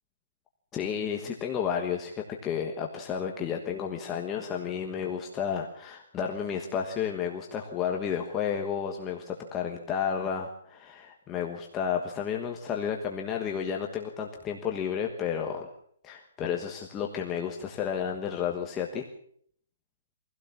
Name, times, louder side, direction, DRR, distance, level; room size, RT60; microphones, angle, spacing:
voice 1, 0.7-15.7 16.0-19.1, left 7 dB, 10° left, 1 dB, 1.3 m, -32 dB
24.0 x 16.0 x 7.3 m, 0.64 s
hypercardioid pair, 180°, 0 cm